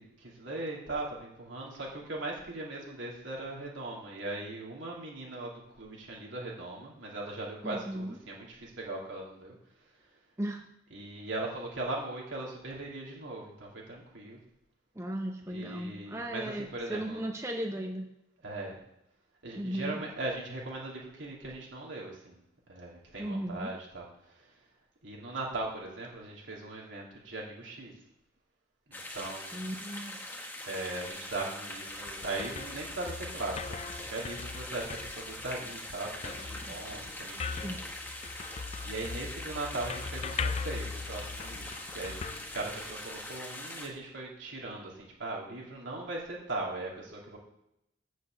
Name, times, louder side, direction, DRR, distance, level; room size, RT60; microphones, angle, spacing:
voice 1, 0.0-9.6 9.9-10.2 10.9-14.4 15.5-17.3 18.4-18.8 19.4-22.4 22.7-24.6 25.0-27.9 28.9-29.8 30.6-37.9 38.3-42.3 42.5-47.4, right 2 dB, 80° right, -3 dB, 2.9 m, -39 dB
voice 2, 7.6-8.1 10.4-10.6 14.9-18.1 19.6-20.0 23.2-23.7 29.5-30.2 36.6-37.0 37.6-37.8, right 1 dB, 15° right, 2 dB, 0.7 m, -36 dB
sound 1, 28.9-43.9, left 1 dB, 10° left, 1.1 m, -42 dB
sound 2, 31.7-43.2, left 5 dB, 30° left, 0.3 m, -40 dB
7.4 x 6.3 x 7.8 m, 0.82 s
head